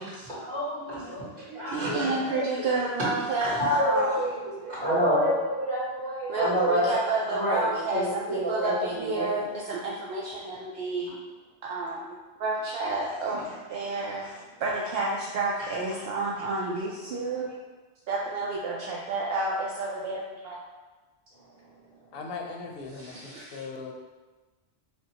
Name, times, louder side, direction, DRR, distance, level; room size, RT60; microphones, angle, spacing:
voice 1, 0.0-2.7 3.4-6.9 7.3-9.3 13.3-13.4 14.2-14.3 15.6-15.7, equal, 45° right, -13 dB, 1.8 m, -28 dB
voice 2, 1.7-4.2 6.3-11.1 11.6-12.0 12.4-13.4 13.7-14.2 14.6-17.5 18.1-20.6 22.9-23.6, right 2 dB, 70° right, -4 dB, 0.7 m, -30 dB
voice 3, 22.1-23.9, left 4 dB, 65° left, 2 dB, 0.8 m, -39 dB
6.3 x 2.2 x 2.8 m, 1.2 s
omnidirectional pair, 1.1 m